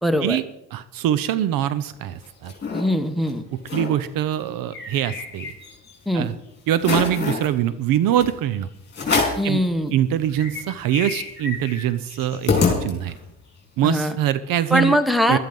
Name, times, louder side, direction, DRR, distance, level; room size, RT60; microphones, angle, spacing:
voice 1, 0.0-0.4 2.7-3.4 6.0-6.3 9.4-9.9 13.8-14.2 14.7-15.4, equal, ahead, 10 dB, 1.4 m, -21 dB
voice 2, 0.7-2.5 3.7-5.5 6.1-6.3 6.7-8.7 9.4-9.6 9.9-12.5 12.8-13.1 13.8-14.9 15.3-15.4, right 11 dB, 60° right, 15 dB, 0.9 m, -23 dB
sound 1, 2.0-2.8 3.3-3.4 3.6-3.9 4.3-5.9 6.3-6.4 6.8-7.5 8.2-8.3 8.9-9.5 10.0-10.1 10.3-13.3, left 4 dB, 25° left, 4.8 m, -26 dB
13.5 x 12.5 x 5.4 m, 0.81 s
supercardioid pair, 105°, 39 cm